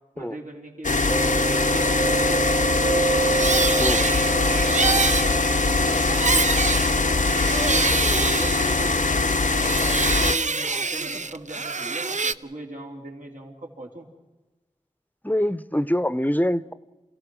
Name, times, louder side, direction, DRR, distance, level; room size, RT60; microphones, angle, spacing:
voice 1, 0.2-2.5 2.8-7.1 7.6-14.1, right 1 dB, 80° right, 3.6 m, -38 dB
sound 1, 0.8-10.3, left 3 dB, 75° left, 0.7 m, -22 dB
Mallet percussion, 1.1-10.7, right 3 dB, 30° right, 0.8 m, -30 dB
sound 2, 3.0-9.2 9.5-12.3, right 4 dB, 65° right, 0.6 m, -26 dB
voice 2, 15.2-16.7, equal, 15° left, 0.7 m, -24 dB
28.0 x 16.5 x 6.3 m
wide cardioid pair, 50°, 13 cm